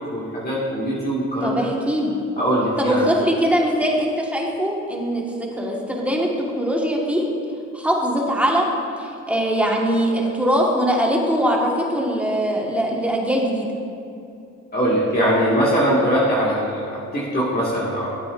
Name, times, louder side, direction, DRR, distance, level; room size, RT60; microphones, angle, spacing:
voice 1, 0.0-1.7 2.4-3.0 14.7-18.1, equal, 30° left, -7 dB, 1.9 m, -21 dB
voice 2, 1.4-2.1 2.8-5.2 5.5-6.3 6.6-7.2 7.7-8.7 9.0-13.7, equal, 5° right, -2 dB, 1.5 m, -21 dB
12.0 x 8.2 x 2.5 m, 2.6 s
cardioid pair, 90°, 30 cm